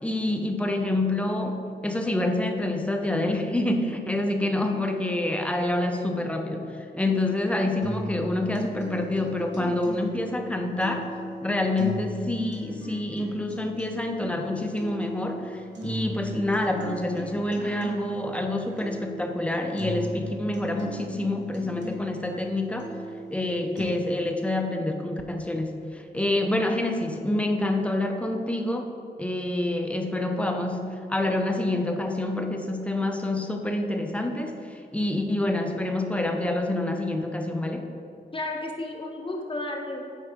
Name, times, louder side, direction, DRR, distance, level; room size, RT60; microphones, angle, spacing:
voice 1, 0.0-11.1 11.4-22.9 23.3-28.9 29.2-37.9, left 1 dB, 5° left, 4 dB, 0.6 m, -27 dB
sound 1, 7.8-23.8, right 1 dB, 85° right, 1.2 m, -38 dB
voice 2, 38.3-40.0, left 2 dB, 30° left, 2 dB, 0.9 m, -32 dB
8.1 x 4.7 x 3.6 m, 2.4 s
wide cardioid pair, 85°, 18 cm